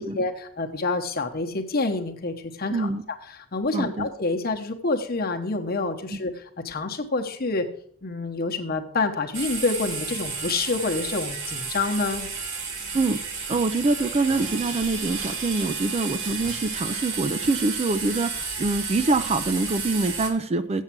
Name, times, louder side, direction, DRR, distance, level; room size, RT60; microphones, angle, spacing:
voice 1, 0.0-2.9 3.3-6.3 6.6-7.6 8.0-12.3, left 3 dB, 45° left, 5 dB, 1.0 m, -27 dB
voice 2, 2.7-3.0 3.7-4.1 6.1-6.2 12.9-13.2 13.5-20.8, right 3 dB, 30° right, 12 dB, 0.4 m, -25 dB
sound 1, 9.3-20.3, right 4 dB, 60° right, 1.8 m, -32 dB
7.8 x 7.4 x 5.9 m, 0.62 s
head